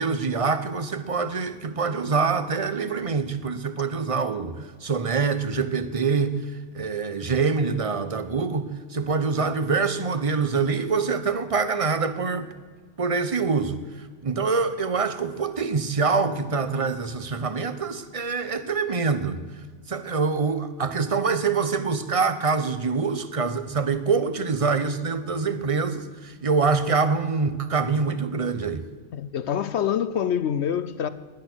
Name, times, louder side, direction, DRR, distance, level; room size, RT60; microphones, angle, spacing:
voice 1, 0.0-6.3 6.7-12.5 13.0-19.4 19.9-28.9, right 4 dB, 30° right, 0.9 m, -25 dB
voice 2, 29.1-31.1, left 9 dB, 65° left, 0.9 m, -26 dB
17.5 x 11.0 x 6.2 m
omnidirectional pair, 1.3 m